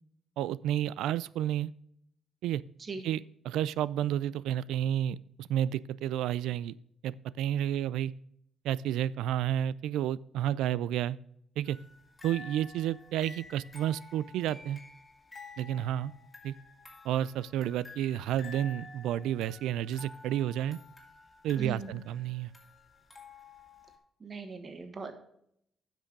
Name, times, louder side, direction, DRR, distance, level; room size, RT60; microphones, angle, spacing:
voice 1, 0.4-1.7 2.4-2.6 3.0-3.2 3.5-6.7 7.0-8.1 8.6-11.2 11.6-11.8 12.2-14.8 15.6-16.1 16.4-16.5 17.0-20.8 21.4-22.5, right 11 dB, 85° right, 21 dB, 0.3 m, -31 dB
voice 2, 2.8-3.1 21.6-22.0 24.2-25.1, right 4 dB, 35° right, 7 dB, 1.3 m, -40 dB
sound 1, 11.6-24.0, left 3 dB, 15° left, 2.6 m, -51 dB
9.9 x 6.2 x 5.2 m, 0.72 s
cardioid pair, 90°, 0 cm